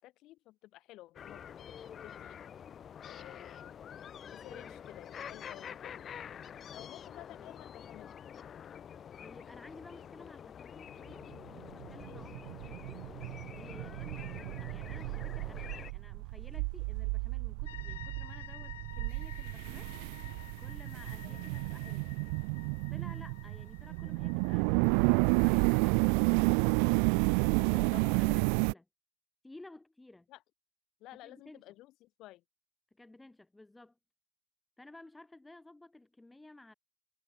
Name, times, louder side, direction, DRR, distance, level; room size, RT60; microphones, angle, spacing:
voice 1, 0.0-2.4 3.1-6.1 6.7-8.1 12.0-12.4 21.2-21.4 27.7-28.2 30.3-30.4 31.0-32.4, left 17 dB, 50° left, 6.6 m, -53 dB
sound 1, 1.2-15.9, left 8 dB, 30° left, 1.4 m, -47 dB
voice 2, 4.5-4.8 6.7-7.0 7.4-7.5 9.2-13.1 13.5-19.9 20.6-22.1 22.9-24.7 25.4-28.9 29.4-30.3 31.1-31.6 32.9-34.0 34.8-36.7, left 2 dB, 10° left, 1.4 m, -54 dB
sound 2, 11.6-28.7, right 40 dB or more, 65° right, 0.4 m, -31 dB
sound 3, 17.7-25.8, left 13 dB, 90° left, 1.5 m, -52 dB
supercardioid pair, 110°, 0 cm